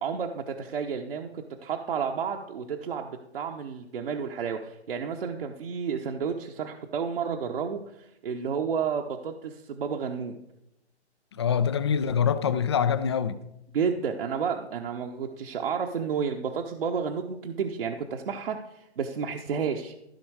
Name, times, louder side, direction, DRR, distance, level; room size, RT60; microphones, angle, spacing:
voice 1, 0.0-10.3 13.7-19.9, right 6 dB, 55° right, 1.1 m, -31 dB
voice 2, 11.4-13.4, left 7 dB, 25° left, 0.4 m, -24 dB
14.5 x 6.0 x 4.8 m
figure-of-eight pair, 130°, 34 cm